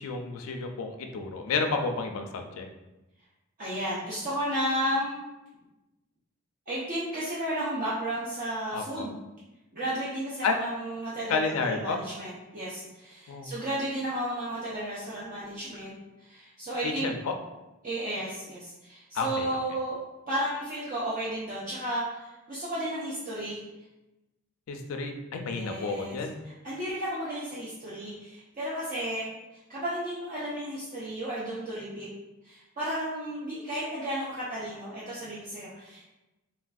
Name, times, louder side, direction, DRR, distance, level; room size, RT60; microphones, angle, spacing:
voice 1, 0.0-2.7 8.7-9.1 10.4-10.5 11.3-12.0 13.3-13.5 16.8-17.3 19.1-19.5 24.7-26.4, left 4 dB, 80° left, 4 dB, 0.3 m, -31 dB
voice 2, 3.6-5.2 6.7-9.1 9.7-15.9 16.2-17.1 17.8-20.0 20.3-23.6 25.5-26.2 26.6-29.3 29.7-32.1 32.4-36.0, right 1 dB, 40° right, -9 dB, 0.6 m, -33 dB
3.2 x 2.5 x 2.3 m, 1.0 s
head